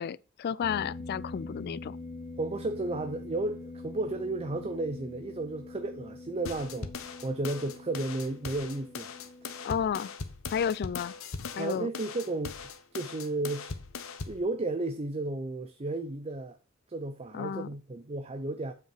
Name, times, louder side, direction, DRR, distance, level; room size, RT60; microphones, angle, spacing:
voice 1, 0.0-2.0 9.6-10.1 10.5-11.1 11.6-11.9 17.3-17.7, left 7 dB, 50° left, 0.3 m, -32 dB
sound 1, 0.6-9.7, left 2 dB, 25° left, 2.4 m, -44 dB
voice 2, 2.4-6.9 7.2-9.1 9.4-9.5 11.6-13.7 14.2-16.6 16.9-18.7, right 2 dB, 30° right, 0.5 m, -33 dB
sound 2, 6.5-14.4, left 4 dB, 70° left, 0.9 m, -40 dB
7.5 x 5.8 x 4.5 m
head